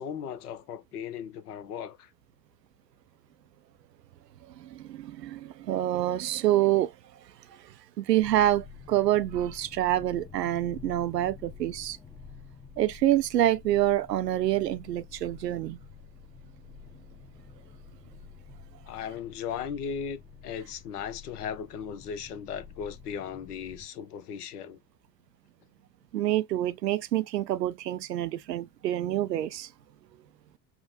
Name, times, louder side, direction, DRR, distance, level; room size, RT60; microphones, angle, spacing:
voice 1, 0.0-2.1 18.9-24.8, left 7 dB, 65° left, 0.9 m, -37 dB
voice 2, 4.5-6.9 7.5-12.0 12.8-15.8 26.1-29.7, right 13 dB, 80° right, 0.6 m, -27 dB
sound 1, 8.2-23.9, left 5 dB, 10° left, 0.6 m, -49 dB
5.8 x 2.1 x 2.7 m
figure-of-eight pair, 70°, 49 cm